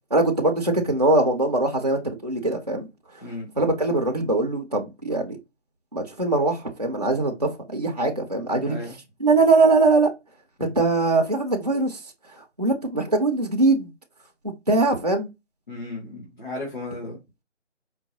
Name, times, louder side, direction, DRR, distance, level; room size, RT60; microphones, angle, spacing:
voice 1, 0.1-2.9 3.6-5.4 5.9-8.8 9.2-10.1 10.6-12.0 12.6-13.9 14.7-15.3, right 2 dB, 35° right, 0.5 m, -21 dB
voice 2, 3.2-3.6 8.6-8.9 10.6-10.7 15.7-17.2, left 2 dB, 45° left, 1.3 m, -35 dB
4.6 x 2.2 x 2.6 m
figure-of-eight pair, 170°, 36 cm